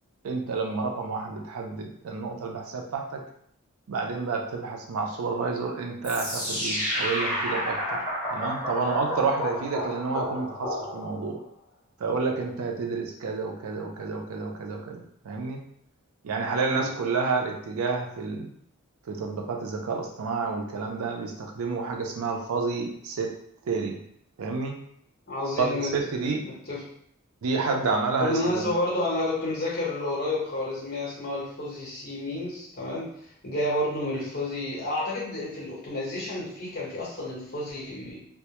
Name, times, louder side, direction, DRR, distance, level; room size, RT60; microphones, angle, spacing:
voice 1, 0.2-3.2 3.9-8.0 8.3-11.4 12.0-15.6 16.2-18.5 19.1-23.3 23.7-24.0 24.4-24.8 25.6-26.5 27.4-28.7, right 4 dB, 85° right, 2 dB, 0.4 m, -29 dB
sound 1, 6.0-11.3, equal, 20° right, 1.1 m, -30 dB
voice 2, 25.3-26.0 26.4-26.8 28.2-33.1 33.4-38.2, left 1 dB, 45° left, -5 dB, 0.9 m, -30 dB
2.1 x 2.0 x 2.9 m, 0.69 s
head